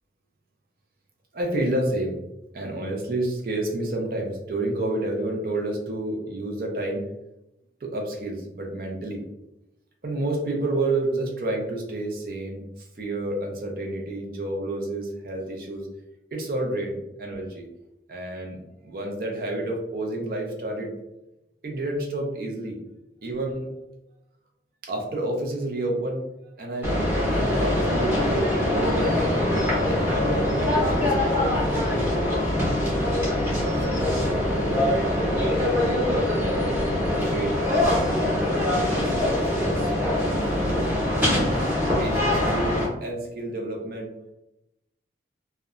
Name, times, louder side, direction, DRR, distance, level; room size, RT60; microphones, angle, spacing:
voice 1, 1.3-2.2 2.5-7.0 7.8-9.2 10.0-15.9 16.3-17.7 18.1-20.9 21.6-22.8 23.2-23.7 24.8-26.2 26.6-29.5 29.8-32.4 32.9-33.4 33.8-35.8 37.1-37.6 38.0-40.9 42.0-44.1, right 2 dB, 55° right, 0 dB, 0.5 m, -30 dB
sound 1, 26.8-42.8, left 1 dB, 10° right, 0.8 m, -23 dB
2.8 x 2.1 x 2.4 m, 0.89 s
head